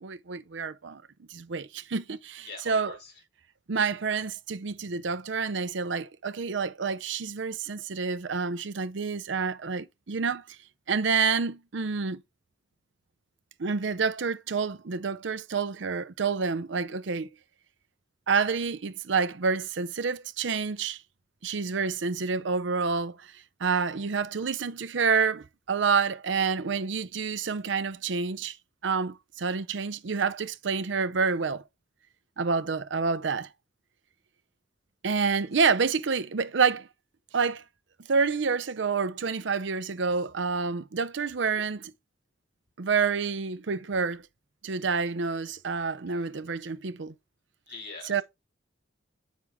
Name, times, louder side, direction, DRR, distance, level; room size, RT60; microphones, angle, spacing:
voice 1, 0.0-1.0 1.3-3.0 3.7-10.4 10.9-12.2 13.6-17.3 18.3-21.0 21.4-23.3 23.6-28.6 28.8-31.6 32.4-33.5 35.0-36.9 37.3-37.6 38.1-41.9 42.8-44.2 44.6-47.1 48.1-48.2, right 5 dB, 70° right, 0.6 m, -28 dB
voice 2, 2.4-3.1 46.1-46.3 47.7-48.2, left 4 dB, 60° left, 5.1 m, -44 dB
7.8 x 6.2 x 3.4 m
head